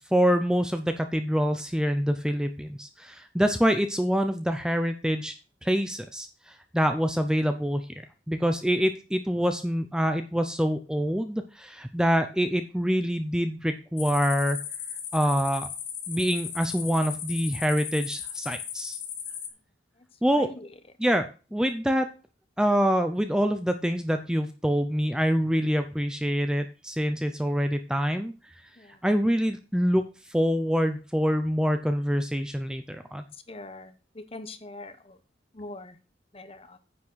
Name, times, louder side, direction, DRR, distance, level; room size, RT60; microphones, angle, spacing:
voice 1, 0.0-5.3 5.6-7.9 8.3-14.6 15.1-15.7 16.1-19.0 20.2-20.5 21.0-22.1 22.6-28.3 29.0-30.0 30.3-33.2, equal, 5° right, 7 dB, 0.6 m, -25 dB
sound 1, 14.0-19.5, left 8 dB, 60° left, 2.6 m, -36 dB
voice 2, 20.3-20.8 28.7-29.0 33.3-35.2 35.5-36.0 36.3-36.8, left 2 dB, 30° left, 10 dB, 1.0 m, -43 dB
9.7 x 6.0 x 6.3 m, 0.34 s
head